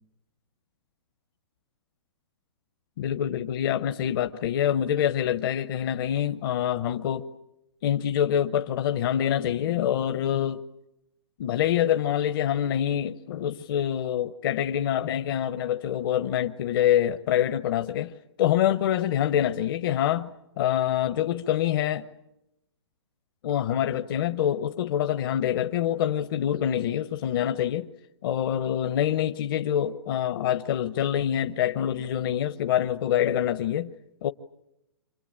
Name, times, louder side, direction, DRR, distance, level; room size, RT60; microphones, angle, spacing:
voice 1, 3.0-7.3 7.8-10.6 11.4-18.1 18.4-20.3 20.6-22.0 23.4-27.9 28.2-33.9 34.2-34.3, left 10 dB, 50° left, 0.9 m, -26 dB
27.5 x 24.0 x 8.8 m
hypercardioid pair, 140°, 14 cm